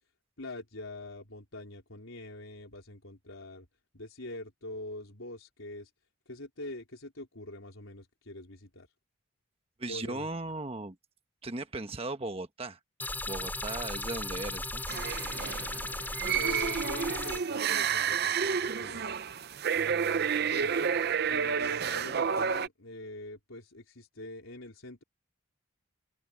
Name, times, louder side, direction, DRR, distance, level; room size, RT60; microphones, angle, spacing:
voice 1, 0.4-3.7 3.9-5.9 6.3-8.9 9.9-10.3 16.3-19.2 19.7-20.8 21.3-25.0, left 1 dB, 80° left, 4.2 m, -44 dB
voice 2, 9.8-11.0 11.4-12.8 13.3-14.8, right 2 dB, 30° right, 1.2 m, -37 dB
sound 1, 13.0-17.4, left 2 dB, 10° left, 5.8 m, -36 dB
sound 2, 14.9-22.7, right 7 dB, 50° right, 0.6 m, -30 dB
open air
head